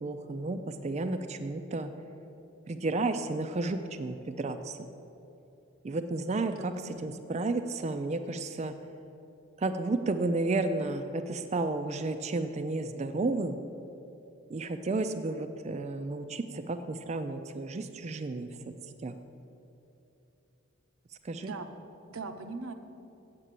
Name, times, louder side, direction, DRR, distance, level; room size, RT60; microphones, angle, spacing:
voice 1, 0.0-1.9 2.7-4.9 5.8-8.7 9.6-13.6 14.5-18.5 19.0-19.1 21.2-21.5, right 2 dB, 30° right, 8 dB, 0.3 m, -32 dB
voice 2, 6.5-7.2 21.4-21.7 22.1-22.7, right 3 dB, 90° right, 7 dB, 0.7 m, -40 dB
8.0 x 7.5 x 7.5 m, 2.9 s
head